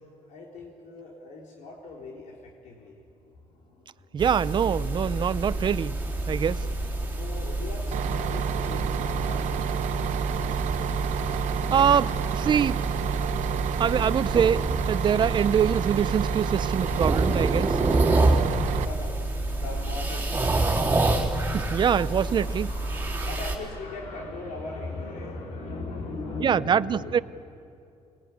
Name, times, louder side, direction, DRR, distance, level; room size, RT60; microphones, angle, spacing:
voice 1, 0.3-4.2 6.0-6.3 7.0-10.2 18.7-27.2, left 3 dB, 80° left, -2 dB, 3.5 m, -40 dB
voice 2, 4.1-6.0 6.3-6.7 11.3-11.4 11.7-12.8 13.8-17.8 21.5-22.7 26.4-27.2, right 8 dB, 40° right, 16 dB, 0.6 m, -24 dB
sound 1, 4.2-23.6, right 2 dB, 15° right, 3.6 m, -28 dB
Bus, 7.9-18.8, right 11 dB, 75° right, 0.8 m, -30 dB
26.0 x 20.0 x 9.4 m, 2.5 s
cardioid pair, 130°, 12 cm